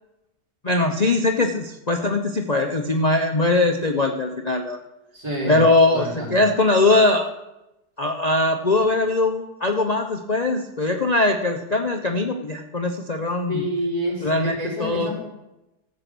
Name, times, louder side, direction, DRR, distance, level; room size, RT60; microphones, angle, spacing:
voice 1, 0.6-4.8 5.5-7.3 8.0-13.6 14.2-15.2, left 2 dB, 35° left, 3 dB, 0.6 m, -21 dB
voice 2, 5.1-5.6 5.9-6.5 13.5-15.2, equal, 65° right, -5 dB, 5.2 m, -28 dB
14.0 x 8.2 x 6.2 m, 0.92 s
omnidirectional pair, 1.8 m